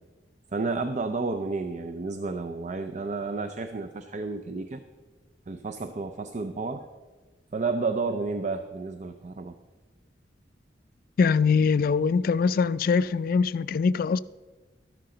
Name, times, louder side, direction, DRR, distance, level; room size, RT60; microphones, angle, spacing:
voice 1, 0.5-4.8 5.5-6.9 7.5-9.5, right 3 dB, 45° right, 0.5 m, -31 dB
voice 2, 11.2-14.2, left 5 dB, 55° left, 0.3 m, -23 dB
13.0 x 11.0 x 3.8 m
head